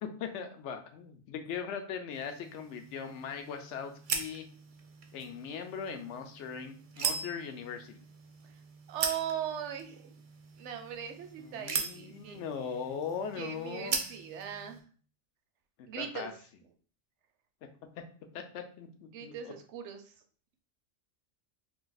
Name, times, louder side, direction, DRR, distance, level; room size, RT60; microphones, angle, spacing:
voice 1, 0.0-4.5 5.1-8.0 11.4-14.0 15.8-16.3 18.0-18.1 18.3-19.5, left 6 dB, 80° left, 6 dB, 0.9 m, -40 dB
sound 1, 2.1-14.8, right 5 dB, 55° right, 0.6 m, -40 dB
voice 2, 8.9-10.1 10.6-12.4 13.4-14.8 15.9-16.3 19.1-20.0, right 9 dB, 80° right, 6 dB, 0.9 m, -39 dB
2.8 x 2.5 x 3.9 m, 0.44 s
omnidirectional pair, 1.2 m